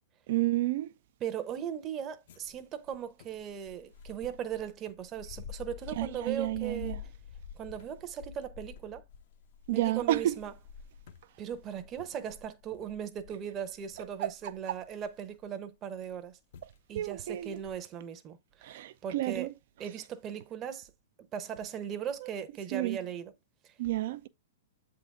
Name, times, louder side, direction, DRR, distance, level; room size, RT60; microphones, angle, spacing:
voice 1, 0.3-0.9 6.0-7.0 9.7-10.4 14.2-14.5 16.9-17.6 18.6-19.5 22.2-22.3 22.7-23.0 23.8-24.3, right 15 dB, 60° right, 0.5 m, -31 dB
voice 2, 1.2-7.0 7.6-9.0 9.7-10.5 11.4-16.4 16.9-19.5 19.8-20.9 21.2-23.3 23.6-23.7, right 8 dB, 30° right, 0.8 m, -38 dB
sound 1, 2.3-15.4 16.1-16.3 16.5-16.8 17.1-17.8, left 7 dB, 65° left, 0.8 m, -49 dB
7.5 x 3.9 x 3.4 m
hypercardioid pair, 130°, 0 cm